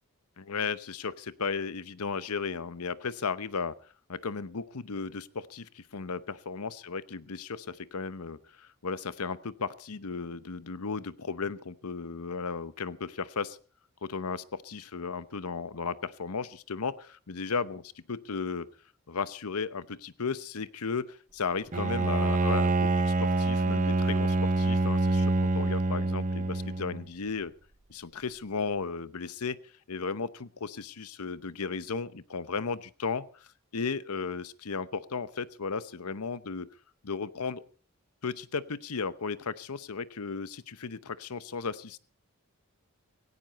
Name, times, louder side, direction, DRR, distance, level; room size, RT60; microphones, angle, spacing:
voice 1, 0.4-3.7 4.1-13.6 14.0-18.7 19.1-27.5 27.9-29.6 29.9-36.7 37.0-37.6 38.2-42.0, left 5 dB, 90° left, 16 dB, 0.9 m, -35 dB
Bowed string instrument, 21.7-27.1, right 2 dB, 35° right, 0.7 m, -26 dB
17.0 x 16.5 x 4.1 m, 0.39 s
head